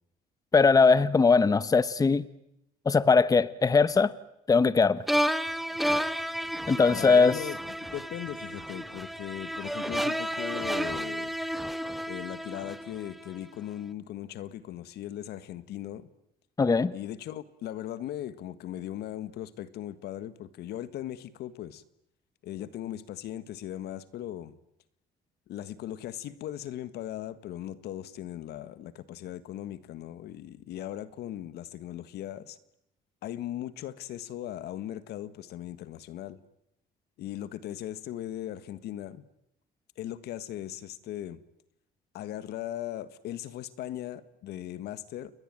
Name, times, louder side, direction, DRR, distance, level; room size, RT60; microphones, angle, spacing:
voice 1, 0.5-2.2 2.9-4.1 4.5-5.0 6.7-7.4 16.6-16.9, left 4 dB, 20° left, 16 dB, 1.0 m, -20 dB
sound 1, 5.1-13.3, equal, ahead, 1.4 m, -32 dB
voice 2, 6.9-7.6 7.9-11.3 12.1-16.1 16.9-21.8 22.4-24.5 25.5-32.6 33.2-36.4 37.2-39.2 40.0-41.4 42.1-45.3, left 12 dB, 75° left, 14 dB, 1.7 m, -38 dB
30.0 x 21.0 x 9.1 m, 0.82 s
cardioid pair, 110°, 17 cm